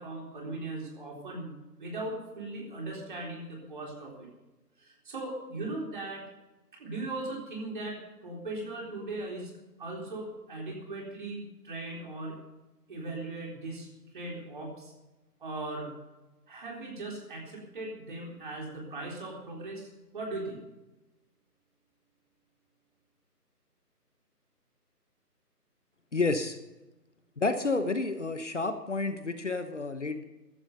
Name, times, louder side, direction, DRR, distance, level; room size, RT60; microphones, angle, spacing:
voice 1, 0.0-1.5 1.8-4.3 4.8-6.2 6.7-12.4 12.9-13.9 14.1-14.9 15.4-15.9 16.5-20.6, right 2 dB, 30° right, -1 dB, 3.9 m, -38 dB
voice 2, 26.1-26.6 27.4-30.2, left 3 dB, 45° left, 9 dB, 1.1 m, -30 dB
15.5 x 12.0 x 5.3 m, 1.0 s
figure-of-eight pair, 165°, 48 cm